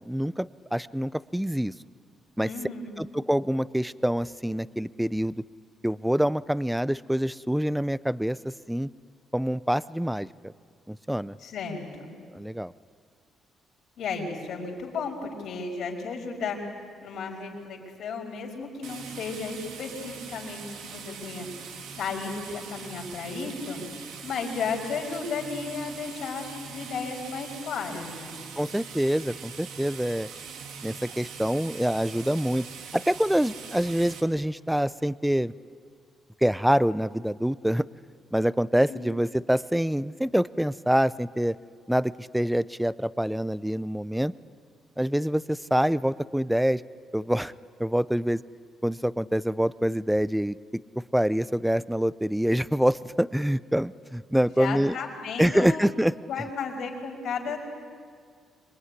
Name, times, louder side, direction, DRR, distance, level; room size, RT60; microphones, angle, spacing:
voice 1, 0.0-1.7 2.4-2.5 3.0-5.3 5.8-8.9 9.3-10.5 10.9-11.3 12.3-12.7 28.6-30.3 30.8-32.7 32.9-35.5 36.4-37.8 38.3-41.6 41.9-44.3 45.0-46.8 47.1-47.5 47.8-48.4 48.8-50.6 51.1-55.0 55.4-56.1, equal, 5° right, 17 dB, 0.6 m, -26 dB
voice 2, 2.4-3.0 11.4-12.1 14.0-16.6 17.0-21.5 21.9-23.8 24.2-28.4 38.9-39.1 54.6-55.9 56.3-57.6, left 5 dB, 70° left, 1 dB, 5.5 m, -34 dB
sound 1, 18.8-34.2, right 6 dB, 90° right, 2.5 m, -42 dB
26.0 x 22.5 x 9.8 m, 2.1 s
cardioid pair, 90°, 0 cm